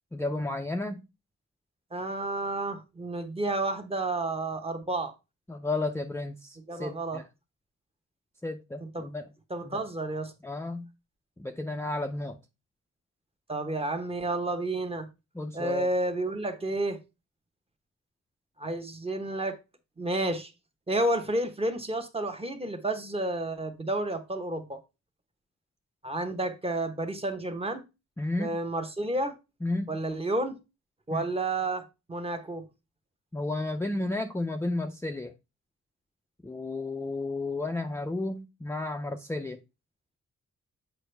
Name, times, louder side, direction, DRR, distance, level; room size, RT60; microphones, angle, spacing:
voice 1, 0.1-1.0 5.5-7.3 8.4-9.3 9.6-9.8 10.4-10.9 11.4-12.4 15.3-15.9 28.2-28.6 29.6-30.0 31.1-31.2 33.3-35.3 36.4-39.6, left 2 dB, 10° left, 0.5 m, -32 dB
voice 2, 1.9-5.1 6.7-7.2 8.8-9.0 9.5-10.3 13.5-15.1 15.5-17.0 18.6-19.6 20.0-20.5 20.9-24.8 26.0-27.8 28.4-29.3 29.9-30.6 31.1-32.6, right 2 dB, 20° right, 1.0 m, -31 dB
8.3 x 5.2 x 3.3 m
wide cardioid pair, 165°, 30 cm